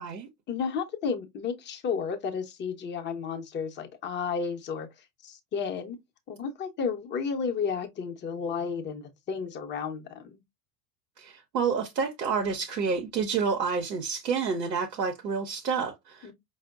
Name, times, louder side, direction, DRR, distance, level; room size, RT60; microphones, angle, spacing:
voice 1, 0.5-4.9 5.2-6.0 6.3-10.4 16.2-16.3, left 6 dB, 25° left, 0.7 m, -32 dB
voice 2, 11.2-16.3, right 5 dB, 90° right, 0.7 m, -29 dB
4.9 x 2.0 x 2.2 m
hypercardioid pair, 85°, 48 cm